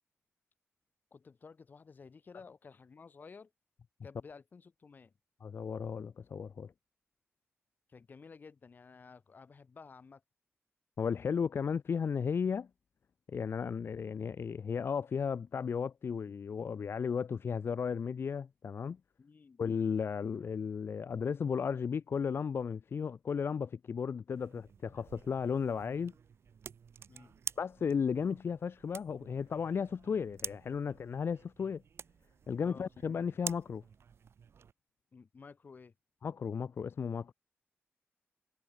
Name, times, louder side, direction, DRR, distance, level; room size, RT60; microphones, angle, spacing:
voice 1, 1.1-3.5 4.0-5.1 7.9-10.2 19.2-19.6 27.1-27.3 32.6-32.9 35.1-35.9, left 5 dB, 40° left, 5.9 m, -53 dB
voice 2, 5.4-6.7 11.0-12.7 13.3-19.0 19.6-26.1 27.6-31.8 32.5-33.8 36.2-37.3, left 6 dB, 55° left, 3.2 m, -34 dB
sound 1, 24.3-34.7, right 7 dB, 65° right, 2.0 m, -48 dB
wide cardioid pair, 170°, 5 cm